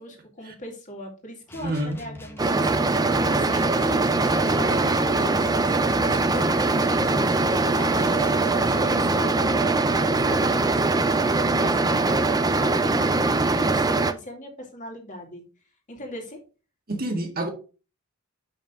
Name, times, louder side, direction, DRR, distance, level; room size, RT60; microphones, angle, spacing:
voice 1, 0.0-5.5 5.9-8.4 8.8-15.5 15.9-16.4, left 1 dB, 35° left, 2.4 m, -39 dB
sound 1, 1.5-8.9, left 1 dB, 10° left, 1.0 m, -42 dB
voice 2, 1.6-2.0 16.9-17.5, right 1 dB, 45° right, 1.9 m, -28 dB
sound 2, 2.4-14.1, right 3 dB, 20° right, 0.5 m, -22 dB
6.8 x 5.8 x 3.6 m
head